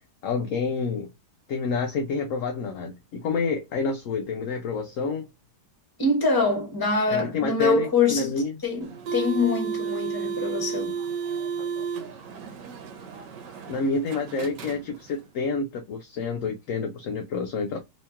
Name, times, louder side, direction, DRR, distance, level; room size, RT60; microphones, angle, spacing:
voice 1, 0.2-1.1 1.5-5.3 7.1-8.6 11.6-11.9 13.7-17.8, left 4 dB, 75° left, 0.7 m, -28 dB
voice 2, 6.0-8.3 8.6-11.0, left 4 dB, 15° left, 0.9 m, -24 dB
sound 1, 8.8-15.3, right 6 dB, 80° right, 1.3 m, -33 dB
2.9 x 2.9 x 3.4 m
omnidirectional pair, 1.9 m